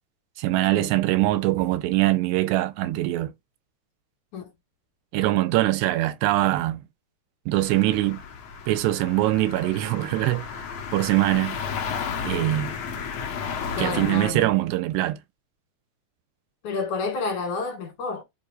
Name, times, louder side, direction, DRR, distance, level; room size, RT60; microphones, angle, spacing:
voice 1, 0.4-3.3 5.1-6.8 7.5-8.2 8.7-10.7 10.9-11.6 12.2-12.7 13.8-15.2, right 16 dB, 85° right, 2.5 m, -23 dB
sound 1, 7.6-14.3, left 6 dB, 80° left, 1.5 m, -33 dB
voice 2, 13.8-14.5 16.6-18.2, left 4 dB, 50° left, 2.8 m, -30 dB
9.5 x 5.2 x 2.6 m
omnidirectional pair, 5.1 m